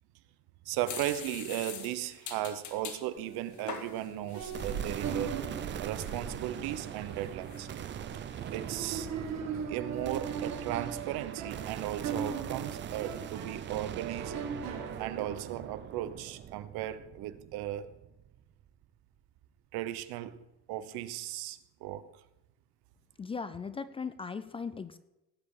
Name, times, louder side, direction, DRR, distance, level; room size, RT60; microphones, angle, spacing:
voice 1, 0.6-5.4 5.8-7.7 8.5-9.1 9.7-14.6 15.0-17.9 19.7-20.4 20.7-22.1, right 13 dB, 85° right, 1.1 m, -36 dB
sound 1, 0.9-3.0 3.5-5.0 5.4-5.5 5.9-6.3 6.8-8.0 8.3-8.9, left 7 dB, 50° left, 1.9 m, -44 dB
sound 2, 3.2-15.7, right 6 dB, 45° right, 1.7 m, -40 dB
sound 3, 4.5-18.8, right 9 dB, 30° right, 0.6 m, -42 dB
voice 2, 23.2-25.0, left 5 dB, 15° left, 0.4 m, -38 dB
18.0 x 8.9 x 4.9 m
cardioid pair, 170°, 36 cm